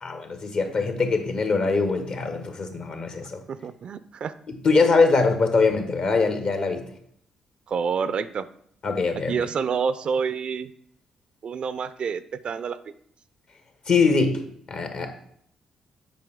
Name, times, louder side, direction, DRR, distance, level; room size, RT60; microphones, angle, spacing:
voice 1, 0.0-3.4 4.5-6.8 8.8-9.3 13.9-14.4 14.7-15.1, left 4 dB, 60° left, 6 dB, 1.2 m, -22 dB
voice 2, 3.5-4.3 7.7-8.5 9.3-10.7 11.4-12.8, right 6 dB, 55° right, 14 dB, 0.4 m, -28 dB
7.6 x 4.8 x 3.6 m, 0.67 s
hypercardioid pair, 45°, 2 cm